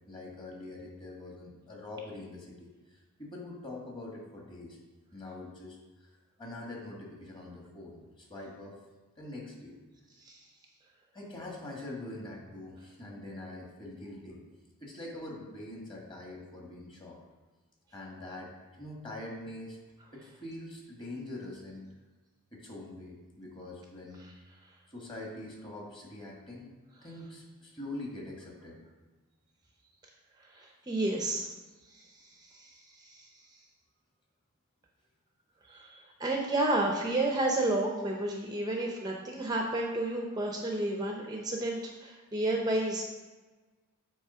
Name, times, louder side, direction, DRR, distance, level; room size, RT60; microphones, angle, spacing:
voice 1, 0.1-2.7 3.2-4.8 5.1-5.8 6.4-8.8 9.2-9.8 11.1-14.4 14.8-17.2 17.9-18.5 18.8-19.8 20.1-21.8 22.5-24.2 24.9-26.7 27.0-28.8, left 2 dB, 25° left, -2 dB, 1.5 m, -43 dB
voice 2, 30.5-31.5 31.9-32.1 32.4-33.3 35.7-43.1, right 2 dB, 20° right, 1 dB, 0.6 m, -31 dB
8.2 x 3.1 x 5.5 m, 1.2 s
head